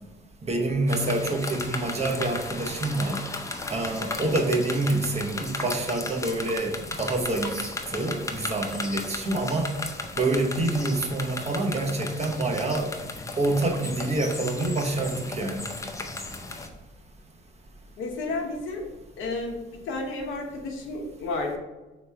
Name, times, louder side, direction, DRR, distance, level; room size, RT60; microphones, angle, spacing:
voice 1, 0.4-3.2 3.7-9.7 10.2-12.9 13.4-15.7, right 2 dB, 35° right, 2 dB, 0.8 m, -27 dB
sound 1, 0.9-16.7, left 2 dB, 15° left, 0.5 m, -35 dB
voice 2, 18.0-18.8 19.2-19.6 19.9-21.6, left 2 dB, 85° left, 1 dB, 0.9 m, -31 dB
3.2 x 3.0 x 4.5 m, 1.1 s
cardioid pair, 90°, 20 cm